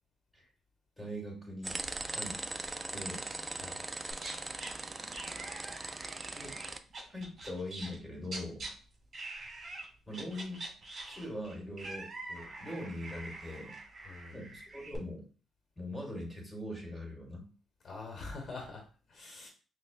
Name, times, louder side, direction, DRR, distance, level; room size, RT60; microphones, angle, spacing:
voice 1, 1.0-2.4 2.9-3.3 6.3-6.6 7.1-8.7 10.1-10.7 11.0-13.8 14.3-15.3 15.8-17.4, left 1 dB, ahead, -1 dB, 1.8 m, -42 dB
sound 1, 1.6-6.8, right 2 dB, 20° right, 0.3 m, -40 dB
sound 2, 4.1-4.7 5.1-8.0 8.2-8.7 9.1-9.9 10.1-15.0, right 2 dB, 45° right, 1.5 m, -45 dB
voice 2, 14.0-14.4 17.8-19.5, left 3 dB, 50° left, 2 dB, 1.0 m, -45 dB
5.7 x 2.1 x 2.4 m, 0.38 s
cardioid pair, 90°, 0 cm